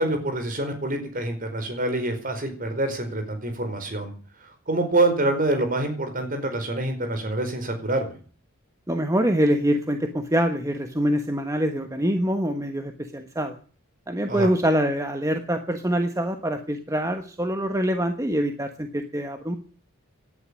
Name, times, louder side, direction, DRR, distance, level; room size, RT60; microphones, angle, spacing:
voice 1, 0.0-4.1 4.7-8.1 14.3-14.5, right 2 dB, 40° right, 6 dB, 4.7 m, -26 dB
voice 2, 8.9-13.5 14.1-19.6, equal, 15° right, 6 dB, 1.3 m, -25 dB
18.5 x 11.0 x 6.4 m, 0.42 s
head